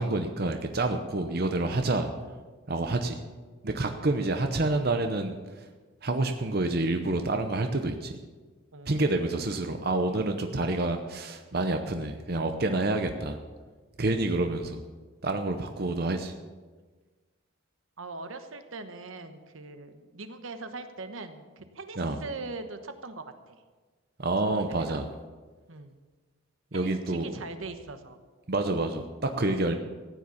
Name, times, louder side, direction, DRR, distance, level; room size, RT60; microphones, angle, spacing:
voice 1, 0.0-2.1 2.7-3.2 3.6-5.4 6.0-8.2 8.9-13.4 14.0-14.8 15.2-16.3 22.0-22.2 24.2-25.1 26.7-27.3 28.5-29.7, right 2 dB, 50° right, 6 dB, 0.8 m, -28 dB
voice 2, 8.7-9.3 18.0-23.6 24.4-25.0 25.7-26.0 26.7-28.2, right 3 dB, 80° right, 8 dB, 1.1 m, -42 dB
14.5 x 9.3 x 7.1 m, 1.4 s
head